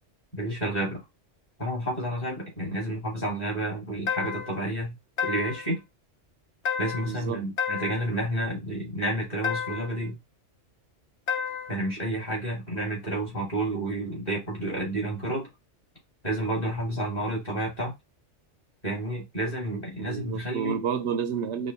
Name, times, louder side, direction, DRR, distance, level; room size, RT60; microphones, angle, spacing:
voice 1, 0.3-1.0 1.6-4.9 5.2-5.8 6.8-10.2 11.7-15.5 16.2-17.9 18.8-20.8, right 1 dB, 35° left, 2.7 m, -30 dB
sound 1, 4.1-4.6 5.2-5.7 6.7-7.2 7.6-8.1 9.4-10.0 11.3-11.8, left 7 dB, 70° left, 1.0 m, -31 dB
voice 2, 7.0-7.4 16.8-17.0 20.0-21.7, right 7 dB, 70° right, 0.8 m, -30 dB
4.9 x 2.2 x 4.0 m
omnidirectional pair, 1.2 m